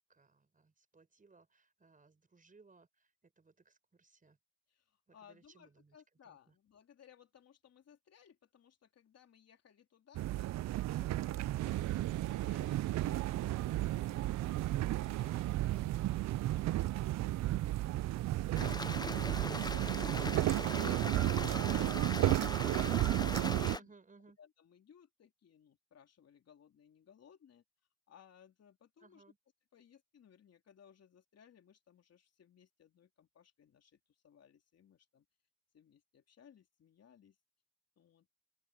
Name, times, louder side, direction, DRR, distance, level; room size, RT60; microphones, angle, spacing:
voice 1, 0.1-4.4 5.1-6.0 6.3-6.4 23.7-24.4 29.0-29.4, right 4 dB, 25° right, 5.7 m, -64 dB
voice 2, 4.7-12.1 12.4-21.9 22.4-23.9 24.4-27.6 28.1-29.2 29.7-35.2 35.7-37.4 38.0-38.3, left 8 dB, 55° left, 3.4 m, -63 dB
sound 1, 10.2-23.8, right 15 dB, 60° right, 0.5 m, -33 dB
sound 2, 11.6-21.6, right 14 dB, 80° right, 1.0 m, -44 dB
Stream, 18.5-23.8, left 3 dB, 15° left, 0.8 m, -41 dB
open air
cardioid pair, 90°, 30 cm